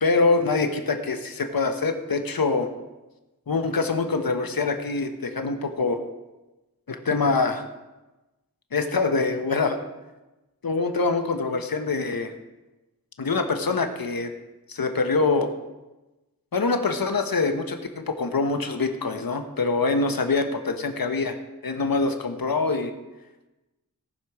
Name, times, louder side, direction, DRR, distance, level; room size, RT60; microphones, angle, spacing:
voice 1, 0.0-2.7 3.5-6.0 6.9-7.6 8.7-9.8 10.6-12.3 13.2-14.3 14.7-15.5 16.5-21.4 21.6-22.9, left 3 dB, 75° left, 6 dB, 1.2 m, -24 dB
18.0 x 6.4 x 4.8 m, 1.1 s
wide cardioid pair, 50°, 35 cm